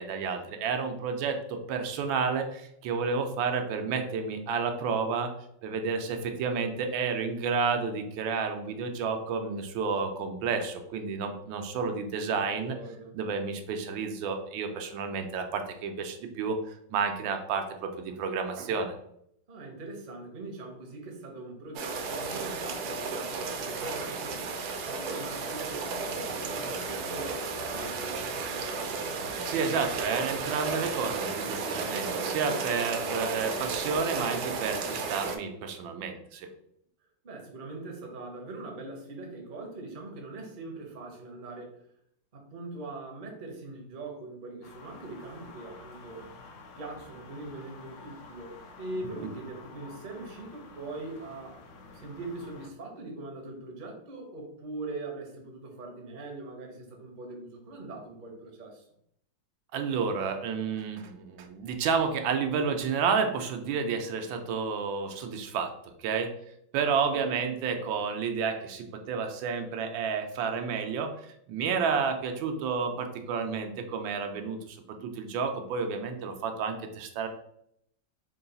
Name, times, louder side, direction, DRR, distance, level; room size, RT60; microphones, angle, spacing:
voice 1, 0.0-5.3 5.6-12.7 13.1-16.6 16.9-19.0 29.4-36.5 59.7-65.7 66.0-66.3 66.7-77.3, right 5 dB, 90° right, 5 dB, 1.4 m, -31 dB
voice 2, 12.4-13.2 19.5-29.0 37.2-41.8 42.3-46.3 46.8-48.5 48.8-51.6 51.9-58.8 66.8-67.4, right 2 dB, 50° right, 1 dB, 0.6 m, -42 dB
sound 1, 21.8-35.4, right 4 dB, 70° right, 0.9 m, -33 dB
sound 2, 44.6-52.7, left 3 dB, 75° left, 0.8 m, -50 dB
3.8 x 2.3 x 3.9 m, 0.72 s
omnidirectional pair, 2.1 m